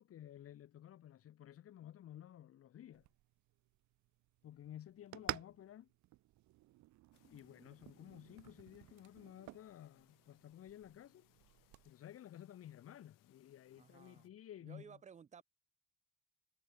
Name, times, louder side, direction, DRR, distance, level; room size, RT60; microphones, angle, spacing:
voice 1, 0.0-3.1 4.4-5.9 7.2-11.3 11.8-15.0, left 11 dB, 45° left, 1.5 m, -54 dB
sound 1, 2.9-11.9, right 17 dB, 65° right, 0.9 m, -51 dB
Chirp tweet, 7.1-14.3, left 20 dB, 85° left, 2.6 m, -74 dB
voice 2, 13.8-14.3 14.6-15.4, right 7 dB, 20° right, 0.7 m, -57 dB
cardioid pair, 140°, 32 cm